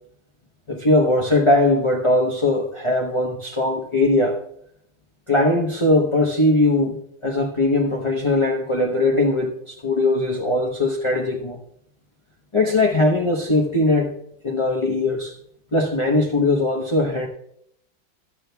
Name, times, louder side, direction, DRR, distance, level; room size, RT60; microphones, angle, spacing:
voice 1, 0.7-4.4 5.3-7.0 7.2-11.6 12.5-14.1 14.4-15.3 15.7-17.3, left 2 dB, 30° left, -1 dB, 0.5 m, -20 dB
15.0 x 12.0 x 2.3 m, 0.70 s
omnidirectional pair, 2.1 m